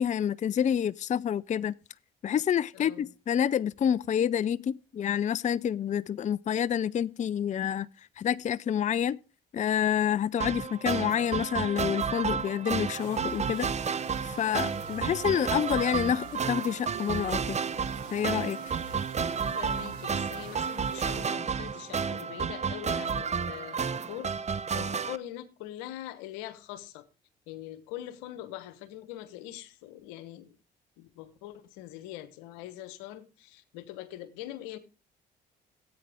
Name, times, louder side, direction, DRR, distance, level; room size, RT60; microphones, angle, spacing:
voice 1, 0.0-1.7 2.2-7.9 8.2-9.2 9.5-13.7 14.2-17.6 18.1-18.6, left 9 dB, 35° left, 0.4 m, -28 dB
voice 2, 2.7-3.1 19.6-27.0 27.5-30.5 31.0-34.8, left 13 dB, 85° left, 1.1 m, -43 dB
sound 1, 10.4-25.2, right 6 dB, 35° right, 0.7 m, -31 dB
sound 2, 13.0-21.2, right 7 dB, 90° right, 1.6 m, -45 dB
13.5 x 8.7 x 3.4 m
hypercardioid pair, 55°, 21 cm